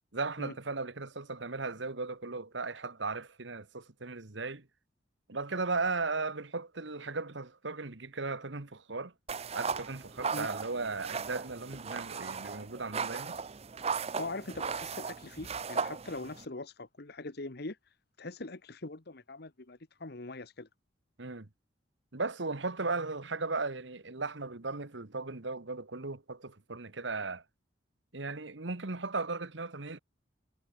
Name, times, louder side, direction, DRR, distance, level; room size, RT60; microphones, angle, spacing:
voice 1, 0.1-4.7 5.3-9.1 9.5-13.4 21.2-21.5 22.1-27.4 28.1-30.0, right 3 dB, 70° right, 1.5 m, -36 dB
sound 1, 9.3-16.5, right 5 dB, 35° right, 0.6 m, -37 dB
voice 2, 14.1-17.8 18.2-20.7, left 2 dB, 55° left, 1.3 m, -42 dB
head